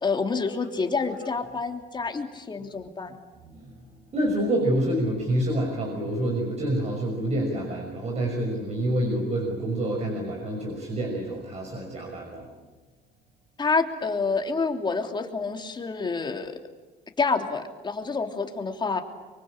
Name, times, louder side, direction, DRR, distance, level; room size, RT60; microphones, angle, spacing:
voice 1, 0.0-3.2 13.6-16.6 17.2-19.0, left 4 dB, 25° left, 4 dB, 3.1 m, -28 dB
voice 2, 4.1-12.5, right 1 dB, 40° right, 0 dB, 6.1 m, -27 dB
25.0 x 23.5 x 8.8 m, 1.3 s
cardioid pair, 110°, 17 cm